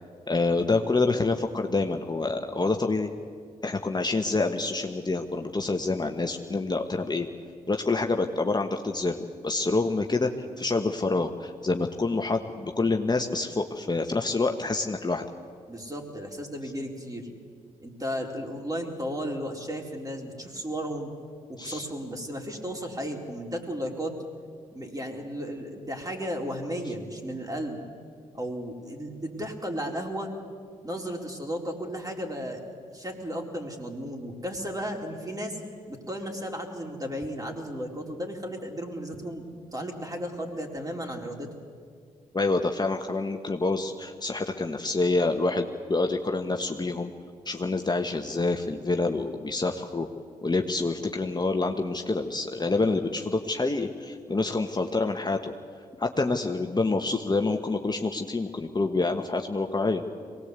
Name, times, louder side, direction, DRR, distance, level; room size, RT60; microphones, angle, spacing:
voice 1, 0.3-3.1 3.6-7.3 7.7-10.3 10.6-15.3 21.6-21.8 42.3-47.1 47.4-50.1 50.4-55.5 56.0-60.0, left 3 dB, 25° left, 4 dB, 1.4 m, -27 dB
voice 2, 15.7-17.3 17.8-21.1 21.5-24.1 24.7-27.8 28.3-30.3 30.8-32.6 32.9-35.6 35.9-39.5 39.7-41.5, equal, 20° right, 1 dB, 4.3 m, -34 dB
23.0 x 19.0 x 8.3 m, 2.1 s
hypercardioid pair, 45°, 16 cm